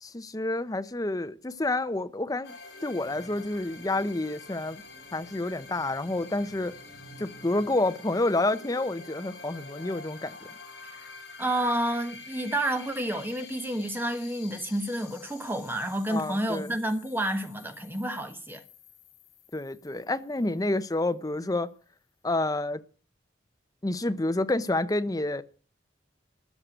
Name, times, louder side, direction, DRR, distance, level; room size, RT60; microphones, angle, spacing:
voice 1, 0.0-2.5 2.8-4.8 5.1-6.7 7.2-10.4 16.1-16.7 19.5-21.7 22.2-22.8 23.8-25.4, left 2 dB, 20° left, 0.6 m, -29 dB
sound 1, 2.4-20.9, left 4 dB, 60° left, 5.3 m, -48 dB
voice 2, 11.4-18.6, right 1 dB, 10° right, 1.2 m, -30 dB
13.5 x 6.5 x 9.1 m
head